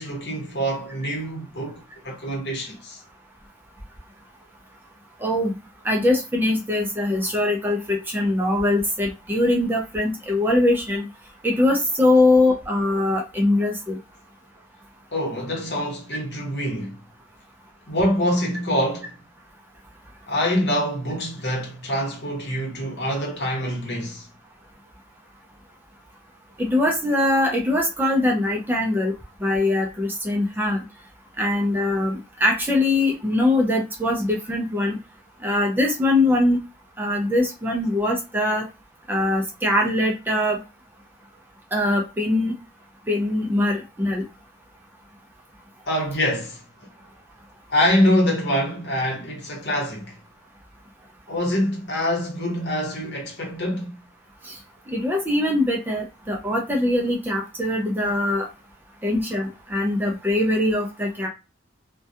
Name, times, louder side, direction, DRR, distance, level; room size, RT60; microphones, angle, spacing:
voice 1, 0.0-3.0 15.1-17.0 17.9-19.1 20.3-24.3 45.8-46.6 47.7-50.2 51.3-54.0, equal, 60° left, 1.0 m, -25 dB
voice 2, 5.2-5.5 5.8-11.1 11.4-14.0 26.6-29.1 29.4-30.8 31.4-35.0 35.4-36.6 37.0-38.7 39.1-40.6 41.7-42.5 43.1-44.2 54.5-54.6 54.9-58.5 59.0-61.3, left 1 dB, 10° right, 0.4 m, -22 dB
2.3 x 2.2 x 2.7 m
head